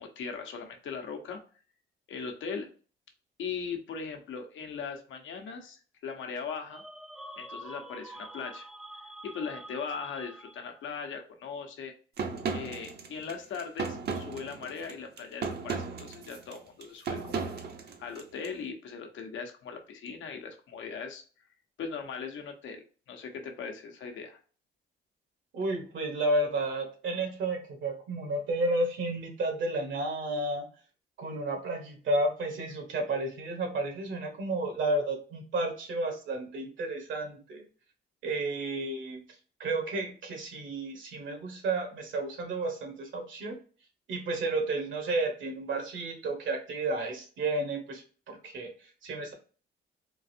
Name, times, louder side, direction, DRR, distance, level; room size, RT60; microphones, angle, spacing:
voice 1, 0.0-1.4 2.1-2.7 3.4-6.8 7.4-8.7 9.2-11.9 12.5-17.5 18.0-21.2 21.8-24.4, left 5 dB, 75° left, 4 dB, 0.9 m, -39 dB
sound 1, 6.7-10.9, right 1 dB, ahead, 0.4 m, -46 dB
sound 2, 12.2-18.5, right 5 dB, 55° right, 0.7 m, -36 dB
voice 2, 25.5-30.7 31.2-37.7 38.2-39.2 39.6-43.6 44.1-49.3, right 2 dB, 75° right, 3 dB, 1.3 m, -32 dB
3.8 x 2.5 x 2.7 m, 0.38 s
cardioid pair, 90°, 20 cm